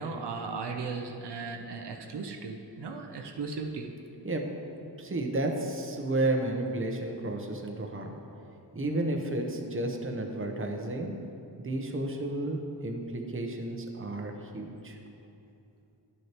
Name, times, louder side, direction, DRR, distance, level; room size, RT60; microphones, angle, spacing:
voice 1, 0.0-3.9, right 4 dB, 75° right, 3 dB, 0.7 m, -36 dB
voice 2, 4.8-8.1 8.7-11.1 11.6-15.0, right 2 dB, 30° right, 3 dB, 0.8 m, -32 dB
10.5 x 6.4 x 3.0 m, 2.7 s
wide cardioid pair, 60°, 41 cm